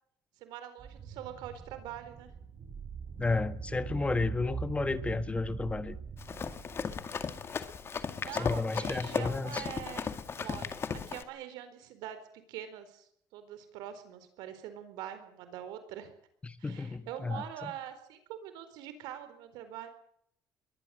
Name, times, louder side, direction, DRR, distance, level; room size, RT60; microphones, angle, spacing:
voice 1, 0.4-2.3 8.2-12.2 12.5-16.1 16.6-19.9, right 11 dB, 90° right, 10 dB, 4.3 m, -44 dB
sound 1, 0.8-7.9, right 6 dB, 45° right, 6.6 m, -42 dB
voice 2, 3.2-6.0 8.4-9.6 16.4-17.7, left 3 dB, 15° left, 12 dB, 1.4 m, -32 dB
Run, 6.2-11.2, left 6 dB, 35° left, 2.1 m, -36 dB
22.5 x 18.5 x 7.8 m, 0.67 s
cardioid pair, 110°, 7 cm